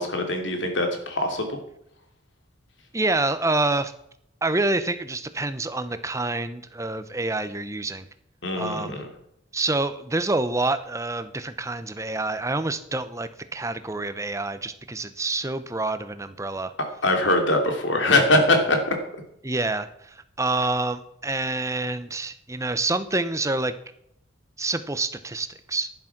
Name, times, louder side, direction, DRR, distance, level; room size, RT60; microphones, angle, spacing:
voice 1, 0.0-1.6 8.4-9.1 17.0-18.9, left 2 dB, 65° left, 4 dB, 3.0 m, -22 dB
voice 2, 2.9-3.9 4.4-8.1 8.6-8.9 9.5-16.7 19.4-23.7 24.6-25.9, right 2 dB, 15° right, 11 dB, 0.8 m, -27 dB
11.0 x 10.5 x 5.9 m, 0.74 s
head